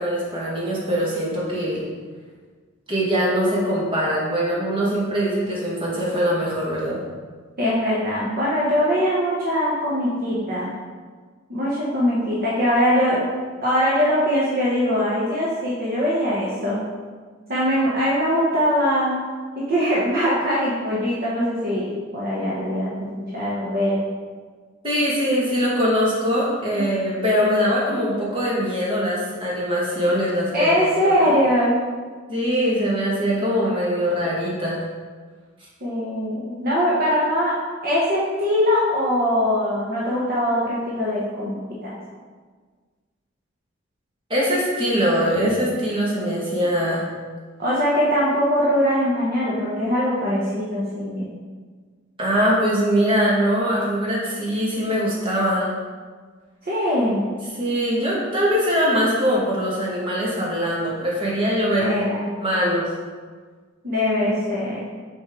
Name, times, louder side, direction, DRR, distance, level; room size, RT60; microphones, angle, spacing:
voice 1, 0.0-1.8 2.9-7.0 24.8-30.7 31.0-31.1 32.3-34.8 44.3-47.0 52.2-55.7 57.6-61.9 62.3-62.9, equal, 25° right, -6 dB, 1.8 m, -22 dB
voice 2, 7.6-10.7 11.5-13.2 13.6-16.8 17.5-19.2 19.6-24.0 26.7-27.0 30.5-31.8 35.8-37.5 37.8-41.6 41.8-41.9 47.6-51.3 56.6-57.2 61.8-62.3 63.8-64.9, equal, 50° right, -7 dB, 1.2 m, -22 dB
6.4 x 5.3 x 3.8 m, 1.5 s
head